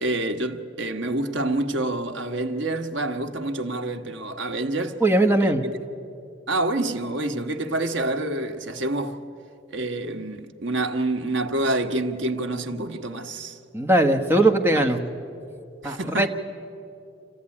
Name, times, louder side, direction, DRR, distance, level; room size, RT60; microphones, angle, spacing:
voice 1, 0.0-5.0 5.4-5.5 6.5-9.2 9.7-13.6 14.7-14.9 15.8-16.3, right 2 dB, 85° right, 1.3 m, -27 dB
voice 2, 5.0-5.7 13.7-15.1 15.8-16.3, right 1 dB, 10° right, 1.2 m, -20 dB
27.0 x 14.5 x 9.8 m
head